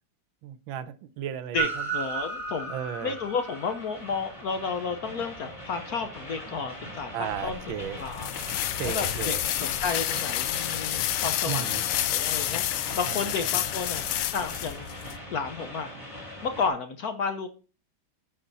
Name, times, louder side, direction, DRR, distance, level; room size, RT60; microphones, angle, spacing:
voice 1, 0.4-1.8 2.7-3.2 7.1-8.0 8.8-9.4 11.5-11.8 13.1-13.2 13.5-13.6, right 9 dB, 80° right, 1.4 m, -34 dB
voice 2, 1.5-2.7 3.0-8.3 8.8-12.6 12.9-14.0 14.3-14.9 15.3-15.9 16.4-17.5, left 5 dB, 60° left, 1.1 m, -32 dB
Train, 1.6-16.7, right 2 dB, 15° left, 2.8 m, -38 dB
sound 1, 7.3-15.2, left 13 dB, 85° left, 1.5 m, -30 dB
10.0 x 5.7 x 4.0 m
omnidirectional pair, 2.2 m